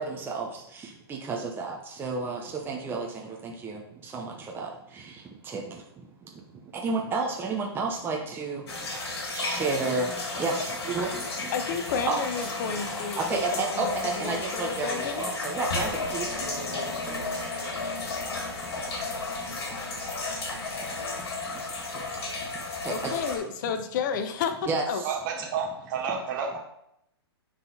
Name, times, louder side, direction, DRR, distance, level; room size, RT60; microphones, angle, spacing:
voice 1, 0.0-8.9 9.3-11.5 12.1-12.2 13.1-17.2 18.6-18.7 19.5-19.6 21.4-21.6 21.9-22.2 22.4-22.5 22.8-23.1 24.7-25.1, right 3 dB, 15° right, 0 dB, 0.9 m, -32 dB
sound 1, 8.7-23.4, left 3 dB, 65° left, 2.5 m, -33 dB
voice 2, 11.5-15.3 22.9-25.0, left 6 dB, 45° left, 9 dB, 0.7 m, -32 dB
voice 3, 25.0-26.6, right 6 dB, 50° right, 0 dB, 1.9 m, -30 dB
9.0 x 4.0 x 4.0 m, 0.78 s
hypercardioid pair, 120°, 14 cm